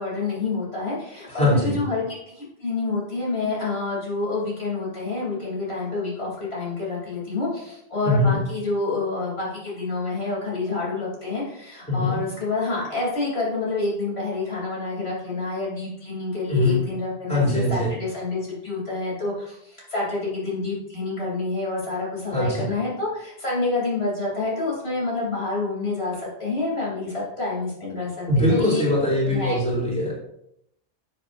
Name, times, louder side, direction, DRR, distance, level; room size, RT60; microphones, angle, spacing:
voice 1, 0.0-28.8 29.2-29.6, left 3 dB, 75° left, -5 dB, 3.4 m, -28 dB
voice 2, 1.3-1.8 8.0-8.4 11.9-12.2 16.5-16.8 17.3-17.9 22.3-22.7 28.3-30.1, left 1 dB, 5° left, -6 dB, 3.6 m, -22 dB
12.5 x 7.4 x 2.6 m, 0.76 s
omnidirectional pair, 1.1 m